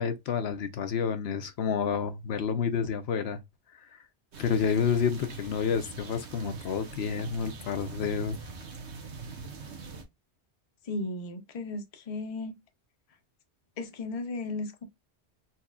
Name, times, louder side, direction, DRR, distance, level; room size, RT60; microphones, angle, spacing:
voice 1, 0.0-3.4 3.7-3.8 4.4-8.4, left 6 dB, 70° left, 0.9 m, -29 dB
sound 1, 4.3-10.0, right 4 dB, 80° right, 1.2 m, -42 dB
voice 2, 10.8-12.5 13.8-14.8, left 2 dB, 40° left, 0.7 m, -35 dB
4.2 x 3.0 x 2.3 m
omnidirectional pair, 1.1 m